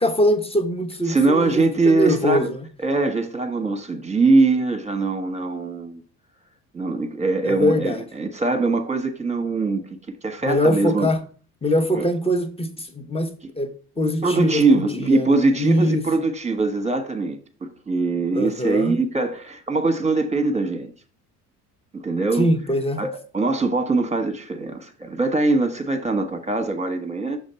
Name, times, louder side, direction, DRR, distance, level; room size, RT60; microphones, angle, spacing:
voice 1, 0.0-2.6 7.4-8.0 10.4-11.2 11.6-16.0 18.3-19.0 22.4-23.0, equal, 15° left, 0.9 m, -23 dB
voice 2, 1.1-2.5 2.8-6.0 6.7-9.8 10.2-11.1 11.9-12.1 14.2-20.9 21.9-22.5 23.0-27.4, right 3 dB, 15° right, 1.2 m, -22 dB
6.4 x 3.6 x 5.5 m
hypercardioid pair, 55°, 46 cm